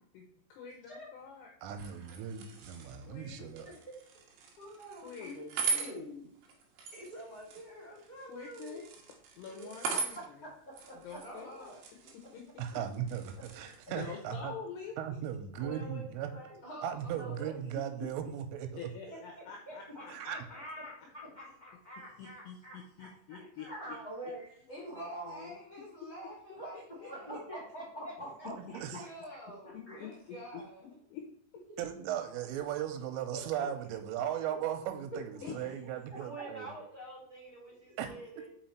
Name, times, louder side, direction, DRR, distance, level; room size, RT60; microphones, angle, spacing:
voice 1, 0.1-1.5 3.0-3.5 5.0-5.5 8.3-8.8 9.4-10.5 10.9-11.7 12.3-12.4 13.9-14.9 18.0-18.1 18.8-20.3 22.2-24.0 26.7-27.1 28.9-29.0 29.7-30.1 30.5-30.6 31.1-31.3 35.4-35.5, left 7 dB, 80° left, 2 dB, 2.5 m, -46 dB
voice 2, 1.6-3.7 12.6-14.5 15.0-16.3 16.8-18.9 20.1-20.4 28.6-29.0 31.8-36.7 38.0-38.1, right 9 dB, 90° right, 7 dB, 3.4 m, -37 dB
sound 1, 1.7-14.1, right 5 dB, 70° right, 2.6 m, -41 dB
voice 3, 4.6-6.3 10.1-11.2 23.4-25.5 26.5-26.7 27.1-28.5 29.6-30.0 33.3-33.4 36.1-36.7, right 1 dB, 35° left, -6 dB, 1.3 m, -45 dB
voice 4, 6.9-8.8 9.5-10.0 15.6-16.6 17.0-17.6 19.0-23.8 27.3-28.1 28.7-28.8 29.3-29.4 31.7-31.8 36.2-38.5, right 1 dB, 15° left, -5 dB, 2.0 m, -48 dB
voice 5, 11.2-11.8 16.6-17.4 24.7-27.3 29.0-30.9 35.4-35.5, equal, 55° left, -5 dB, 1.4 m, -48 dB
5.7 x 5.6 x 4.3 m, 0.67 s
omnidirectional pair, 5.7 m